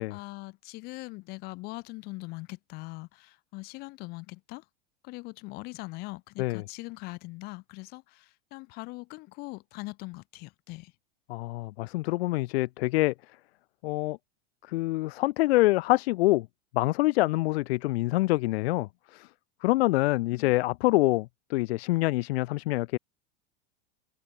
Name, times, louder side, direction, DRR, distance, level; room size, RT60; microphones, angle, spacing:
voice 1, 0.0-4.7 5.0-10.9 20.3-20.6, left 24 dB, 30° left, 0.5 m, -41 dB
voice 2, 11.3-13.1 13.8-14.2 14.7-16.5 16.7-19.3 19.6-23.0, left 19 dB, 80° left, 0.5 m, -26 dB
supercardioid pair, 160°, 31 cm